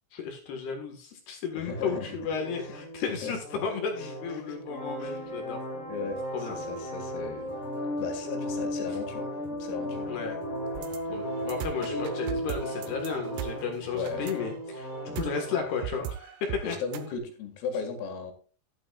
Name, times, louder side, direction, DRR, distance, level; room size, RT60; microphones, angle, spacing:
voice 1, 0.1-5.6 6.3-6.5 10.1-10.4 11.1-16.4 16.6-16.8, left 6 dB, 60° left, 3 dB, 3.1 m, -34 dB
voice 2, 1.6-2.2 3.1-3.3 4.0-4.1 4.5-4.6 5.0-5.2 5.9-7.5 8.0-9.3 9.6-10.1 11.1-11.2 11.8-12.1 13.9-14.3 15.1-15.2 16.6-18.3, left 4 dB, 85° left, 5 dB, 4.7 m, -36 dB
sound 1, 1.7-15.7, equal, 20° left, 2.7 m, -36 dB
sound 2, 6.1-14.3, right 1 dB, 25° right, 5.7 m, -55 dB
sound 3, 10.8-17.1, right 11 dB, 75° right, 2.6 m, -39 dB
12.5 x 11.5 x 2.4 m, 0.38 s
omnidirectional pair, 5.9 m